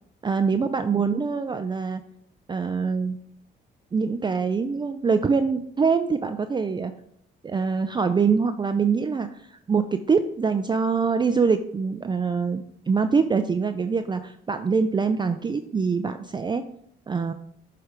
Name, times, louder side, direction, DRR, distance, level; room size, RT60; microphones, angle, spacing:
voice 1, 0.2-2.0 2.5-3.2 3.9-6.9 7.4-16.6 17.1-17.3, right 5 dB, 25° right, 8 dB, 0.4 m, -24 dB
7.9 x 3.4 x 5.0 m, 0.68 s
cardioid pair, 90°, 20 cm